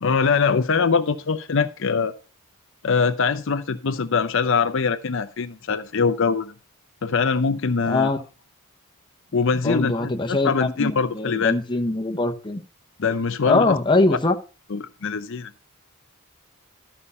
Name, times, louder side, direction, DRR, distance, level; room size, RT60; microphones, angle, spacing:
voice 1, 0.0-2.1 2.8-6.5 7.0-8.1 9.3-11.6 13.0-13.8 14.1-14.2 14.7-15.5, left 5 dB, 60° left, 0.6 m, -23 dB
voice 2, 7.9-8.2 9.6-10.5 10.8-12.6 13.4-14.3, left 2 dB, 20° left, 0.9 m, -22 dB
13.5 x 5.6 x 5.4 m
head